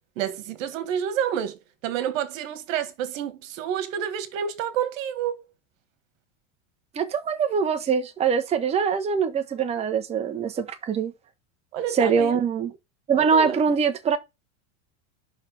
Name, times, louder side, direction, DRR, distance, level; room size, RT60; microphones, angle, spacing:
voice 1, 0.2-1.6 1.8-5.4 11.7-12.4 13.3-13.6, right 9 dB, 80° right, 1.6 m, -29 dB
voice 2, 6.9-11.1 11.9-12.7 13.1-14.2, right 6 dB, 15° right, 0.9 m, -23 dB
5.7 x 4.3 x 6.3 m
supercardioid pair, 150°, 39 cm